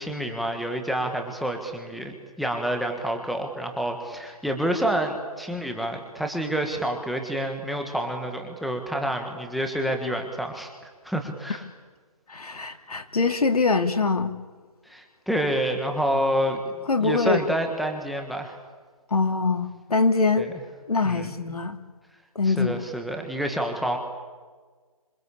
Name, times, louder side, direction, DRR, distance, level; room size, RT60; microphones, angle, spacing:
voice 1, 0.0-11.6 14.9-18.6 20.4-20.6 21.0-21.3 22.4-24.0, right 1 dB, ahead, 4 dB, 1.5 m, -28 dB
voice 2, 12.3-14.3 16.9-17.4 19.1-20.5 20.9-21.8 22.3-22.8, left 4 dB, 75° left, 6 dB, 3.2 m, -23 dB
26.5 x 26.0 x 8.5 m, 1.4 s
hypercardioid pair, 165°, 19 cm